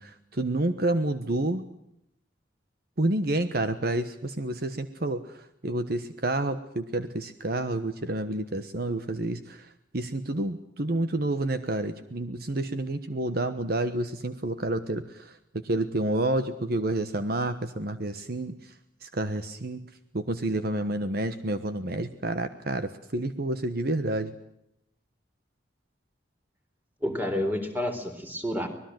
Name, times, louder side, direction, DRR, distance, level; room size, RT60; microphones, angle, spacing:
voice 1, 0.0-1.6 3.0-9.7 9.9-15.4 15.6-18.7 19.0-19.8 20.1-24.3, right 1 dB, 55° right, 10 dB, 1.3 m, -29 dB
voice 2, 27.0-28.7, left 1 dB, 10° right, 6 dB, 4.1 m, -29 dB
25.0 x 20.5 x 7.8 m, 0.77 s
head